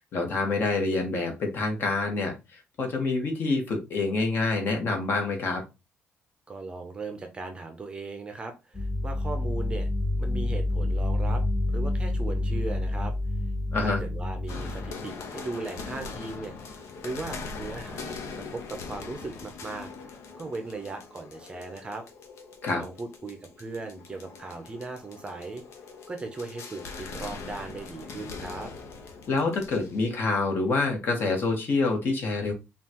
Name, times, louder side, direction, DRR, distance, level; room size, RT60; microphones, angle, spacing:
voice 1, 0.1-5.6 13.7-14.0 22.6-22.8 29.3-32.5, left 3 dB, 50° left, 3 dB, 1.3 m, -27 dB
voice 2, 6.5-9.9 10.2-11.4 11.7-13.1 13.8-18.2 18.5-19.9 20.4-22.0 22.7-25.6 26.1-28.7, right 3 dB, 20° right, 6 dB, 0.6 m, -38 dB
sound 1, 8.7-14.9, left 1 dB, 15° left, 0.6 m, -28 dB
sound 2, 14.5-30.2, left 4 dB, 90° left, 0.8 m, -41 dB
5.5 x 2.4 x 2.9 m, 0.25 s
cardioid pair, 150°, 5 cm